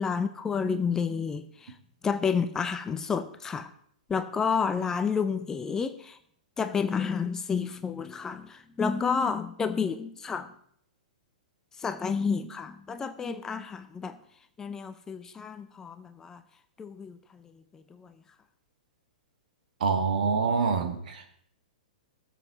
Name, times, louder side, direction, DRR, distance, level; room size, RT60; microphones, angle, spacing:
voice 1, 0.0-1.7 2.0-3.7 4.1-6.2 6.6-10.5 11.8-14.1 14.6-16.4 16.8-17.4 17.7-18.1, left 6 dB, 10° left, 10 dB, 0.6 m, -30 dB
voice 2, 19.8-21.3, right 5 dB, 75° right, 6 dB, 2.1 m, -26 dB
17.5 x 7.5 x 4.0 m, 0.66 s
hypercardioid pair, 155°, 4 cm